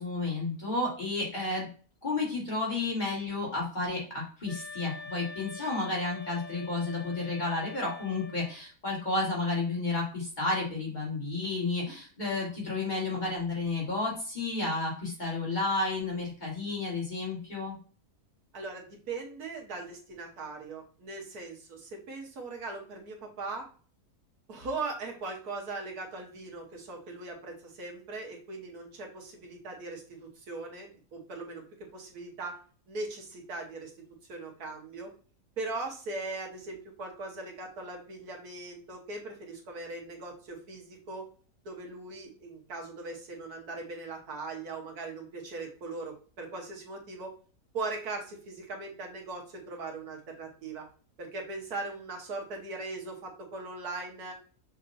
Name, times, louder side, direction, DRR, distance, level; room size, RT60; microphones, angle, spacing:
voice 1, 0.0-1.7 2.0-17.8, left 3 dB, 30° left, -4 dB, 1.9 m, -31 dB
sound 1, 4.5-8.6, left 4 dB, 45° left, 2.3 m, -45 dB
voice 2, 18.5-23.6 24.5-31.6 31.9-32.5 32.9-33.9 34.3-35.1 35.6-41.2 41.6-47.3 47.7-50.8 51.2-54.3, right 3 dB, 70° right, 1 dB, 1.7 m, -39 dB
6.5 x 2.7 x 2.6 m, 0.41 s
omnidirectional pair, 1.7 m